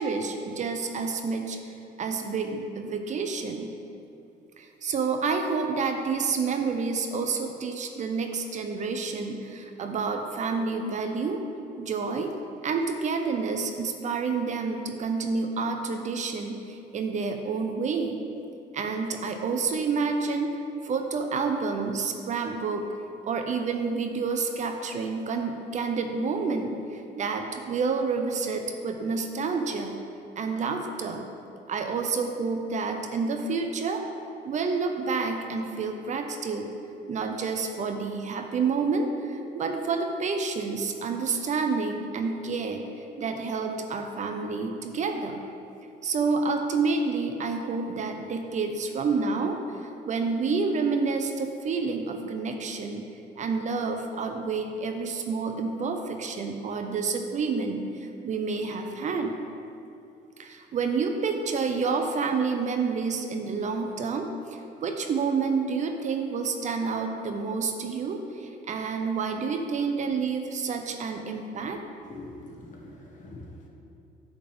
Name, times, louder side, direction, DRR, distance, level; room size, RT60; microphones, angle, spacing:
voice 1, 0.0-1.7 2.0-3.7 4.6-11.4 11.8-12.3 12.6-18.2 18.7-20.6 20.8-22.9 23.2-29.9 30.4-31.3 31.7-34.0 34.4-36.7 37.1-42.8 43.2-45.4 46.0-53.1 53.4-59.3 60.4-64.3 64.8-71.8, right 4 dB, 45° right, 5 dB, 0.7 m, -29 dB
voice 2, 72.1-73.7, left 2 dB, 50° left, -2 dB, 1.7 m, -44 dB
8.8 x 3.6 x 6.9 m, 2.6 s
cardioid pair, 110°, 17 cm